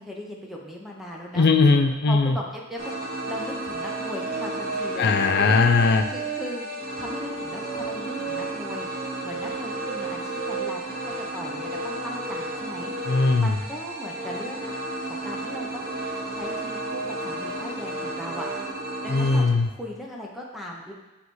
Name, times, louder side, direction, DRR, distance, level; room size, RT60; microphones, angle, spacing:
voice 1, 0.0-1.5 2.1-2.9 3.3-5.6 6.1-6.7 7.0-8.9 9.2-12.9 13.4-14.7 15.0-16.0 16.3-18.5 19.0-20.9, left 1 dB, ahead, -2 dB, 0.7 m, -38 dB
voice 2, 1.3-2.4 5.0-6.0 13.1-13.5 19.1-19.7, left 4 dB, 55° left, 6 dB, 0.5 m, -19 dB
sound 1, 2.8-19.4, right 2 dB, 50° right, 0.9 m, -32 dB
9.3 x 3.4 x 3.1 m, 1.1 s
head